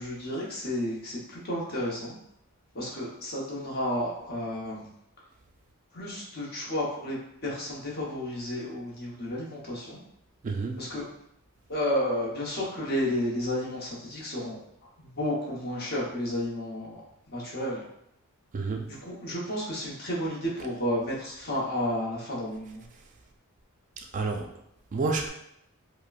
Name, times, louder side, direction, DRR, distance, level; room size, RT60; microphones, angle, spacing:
voice 1, 0.0-2.2 2.7-4.9 5.9-7.2 7.4-10.0 10.8-11.0 11.7-14.6 15.0-17.8 18.9-22.8, left 1 dB, 45° left, -5 dB, 1.0 m, -32 dB
voice 2, 10.4-10.8 18.5-18.9 24.1-24.5 24.9-25.3, right 3 dB, 35° right, 3 dB, 0.3 m, -29 dB
4.9 x 2.1 x 2.4 m, 0.76 s
head